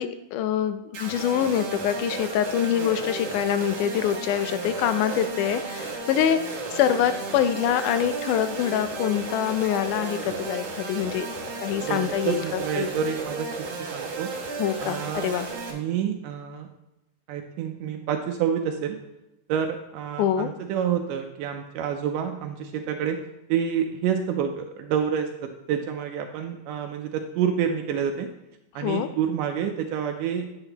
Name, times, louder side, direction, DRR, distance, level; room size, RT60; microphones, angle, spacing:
voice 1, 0.0-6.4 6.7-11.3 11.6-12.9 14.6-15.5 20.2-20.5 28.8-29.1, left 9 dB, 80° left, 10 dB, 1.9 m, -25 dB
sound 1, 0.9-15.7, right 3 dB, 55° right, 2.2 m, -34 dB
voice 2, 11.8-14.3 14.8-15.3 15.7-16.7 17.3-19.0 19.5-23.2 23.5-28.3 28.8-30.5, right 8 dB, 80° right, 4 dB, 2.1 m, -28 dB
8.9 x 8.8 x 2.9 m, 0.91 s
omnidirectional pair, 3.9 m